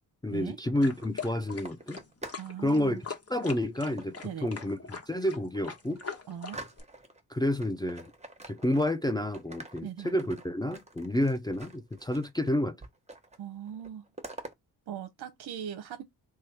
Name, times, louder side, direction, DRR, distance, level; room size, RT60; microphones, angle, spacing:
voice 1, 0.2-2.0 2.6-6.0 7.3-8.1 8.5-12.8, left 1 dB, 10° left, 0.5 m, -30 dB
sound 1, 0.5-2.5 2.8-3.2 4.0-4.8 5.2-5.3 5.7-7.2 7.6-9.1 9.3-12.5 12.8-13.4 13.7-14.5, right 2 dB, 15° right, 1.1 m, -47 dB
sound 2, 0.8-6.8, left 5 dB, 30° left, 1.3 m, -42 dB
voice 2, 2.3-3.0 4.2-4.5 6.3-6.6 9.8-10.1 13.4-14.0 14.9-16.0, right 9 dB, 55° right, 0.8 m, -39 dB
3.1 x 2.3 x 4.3 m
hypercardioid pair, 40°, 48 cm